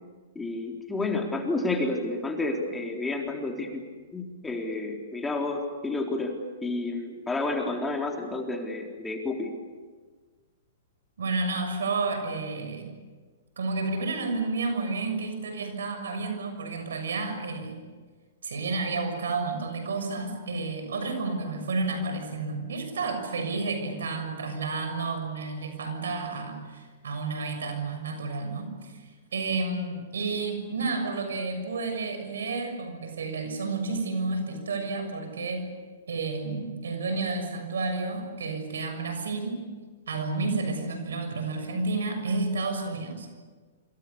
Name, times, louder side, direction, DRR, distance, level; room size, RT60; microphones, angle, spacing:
voice 1, 0.4-3.8 4.1-9.5, left 2 dB, 10° left, 1 dB, 3.9 m, -30 dB
voice 2, 11.2-12.9 13.6-17.8 18.4-29.0 29.3-35.7 36.1-39.6 40.1-43.3, right 3 dB, 75° right, 6 dB, 6.6 m, -31 dB
27.0 x 26.5 x 7.0 m, 1.4 s
hypercardioid pair, 120°, 0 cm